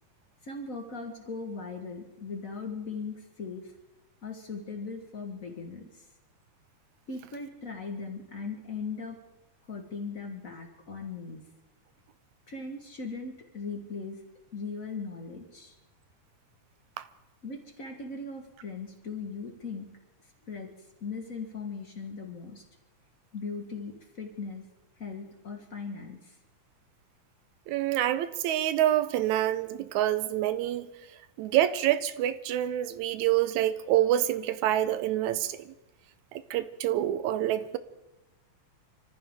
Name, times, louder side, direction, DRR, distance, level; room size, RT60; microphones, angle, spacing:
voice 1, 0.4-3.7 4.2-6.0 7.1-9.2 9.7-11.4 12.5-14.2 14.5-15.7 17.4-19.9 20.4-20.7 21.0-22.6 23.3-24.7 25.0-26.4, left 4 dB, 50° left, 1.0 m, -39 dB
voice 2, 27.7-30.9 31.4-35.7 36.3-37.8, right 12 dB, 75° right, 2.0 m, -27 dB
27.0 x 14.5 x 3.6 m
omnidirectional pair, 3.6 m